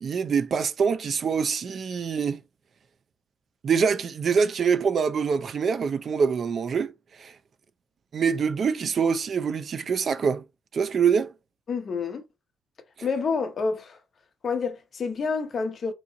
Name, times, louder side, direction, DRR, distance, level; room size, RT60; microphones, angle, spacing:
voice 1, 0.0-2.4 3.6-6.9 7.2-7.3 8.1-10.4 10.7-11.3, right 6 dB, 50° right, 0.5 m, -25 dB
voice 2, 11.7-12.2 13.0-14.0 14.4-15.9, left 4 dB, 45° left, 0.9 m, -28 dB
3.7 x 3.0 x 3.9 m
cardioid pair, 90°, 0 cm